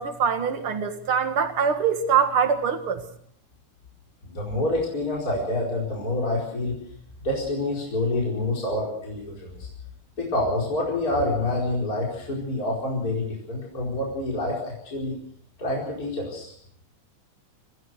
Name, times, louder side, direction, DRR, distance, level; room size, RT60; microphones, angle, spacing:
voice 1, 0.0-3.0, right 7 dB, 50° right, 8 dB, 2.4 m, -23 dB
voice 2, 4.3-6.8 7.2-9.7 10.2-15.1 15.6-16.5, left 2 dB, 30° left, -3 dB, 5.1 m, -27 dB
25.5 x 16.0 x 6.5 m, 0.64 s
omnidirectional pair, 3.5 m